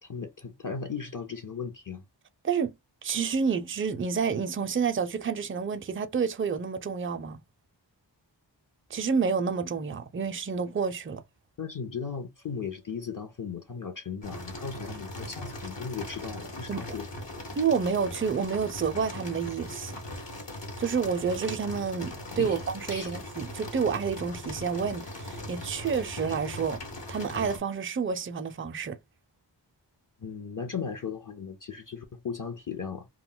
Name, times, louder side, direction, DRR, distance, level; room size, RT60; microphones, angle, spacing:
voice 1, 0.0-2.0 11.6-17.1 22.4-22.6 22.9-23.1 30.2-33.1, left 6 dB, 45° left, 0.6 m, -37 dB
voice 2, 3.0-7.4 8.9-11.2 16.7-17.0 17.6-20.0 20.8-26.8 27.1-29.0, right 6 dB, 30° right, 0.4 m, -29 dB
sound 1, 14.2-27.6, left 1 dB, 70° left, 1.1 m, -40 dB
2.2 x 2.1 x 3.7 m
wide cardioid pair, 40°, 44 cm